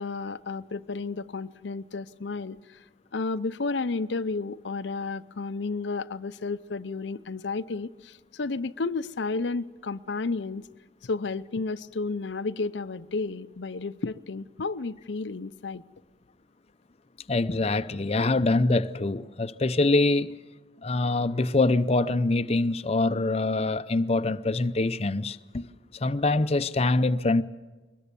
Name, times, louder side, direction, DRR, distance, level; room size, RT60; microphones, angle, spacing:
voice 1, 0.0-2.8 3.1-10.7 11.0-15.8, left 3 dB, 85° left, 0.6 m, -32 dB
voice 2, 17.3-20.4 20.8-25.7 25.9-27.4, left 2 dB, 35° left, 0.6 m, -24 dB
22.5 x 20.5 x 6.8 m
head